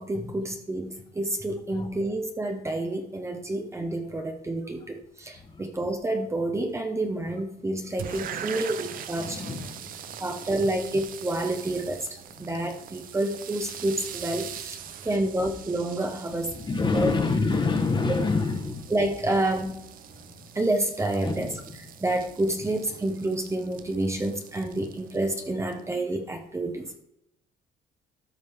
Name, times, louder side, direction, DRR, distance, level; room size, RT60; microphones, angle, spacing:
voice 1, 0.0-9.4 10.2-12.1 12.4-14.8 15.0-17.1 18.9-19.8 20.5-27.0, right 1 dB, 15° right, 4 dB, 0.9 m, -29 dB
sound 1, 8.0-25.9, right 9 dB, 55° right, 0.7 m, -42 dB
voice 2, 9.2-10.2 16.5-18.9 21.2-21.5, left 3 dB, 25° left, 5 dB, 1.3 m, -27 dB
13.0 x 5.1 x 3.6 m, 0.79 s
cardioid pair, 110°, 17 cm